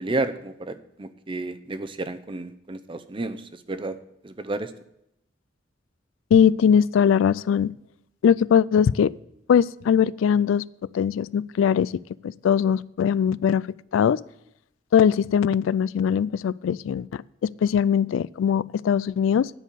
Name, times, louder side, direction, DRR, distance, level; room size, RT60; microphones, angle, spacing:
voice 1, 0.0-4.0 4.2-4.7, right 2 dB, 25° right, 11 dB, 0.6 m, -31 dB
voice 2, 6.3-7.7 8.2-9.1 9.5-10.6 10.9-11.9 12.2-13.7 13.9-14.2 14.9-19.5, left 8 dB, 90° left, 21 dB, 0.3 m, -21 dB
9.9 x 5.5 x 8.3 m, 0.79 s
head